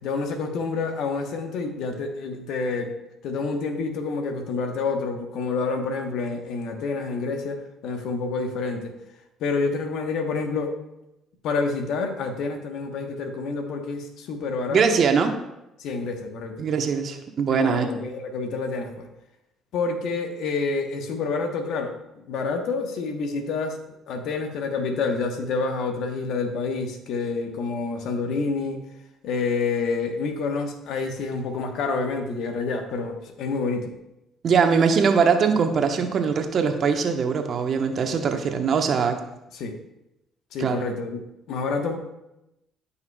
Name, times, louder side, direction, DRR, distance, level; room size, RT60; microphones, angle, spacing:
voice 1, 0.0-2.9 3.2-8.9 9.4-10.8 11.4-15.0 15.8-16.7 17.5-19.1 19.7-28.8 29.2-33.9 39.5-39.8 40.5-42.0, left 4 dB, 70° left, 5 dB, 1.1 m, -28 dB
voice 2, 14.7-15.3 16.6-17.9 34.4-39.2 40.6-40.8, right 6 dB, 55° right, 5 dB, 1.0 m, -21 dB
14.0 x 5.7 x 2.3 m, 0.90 s
hypercardioid pair, 60°, 0 cm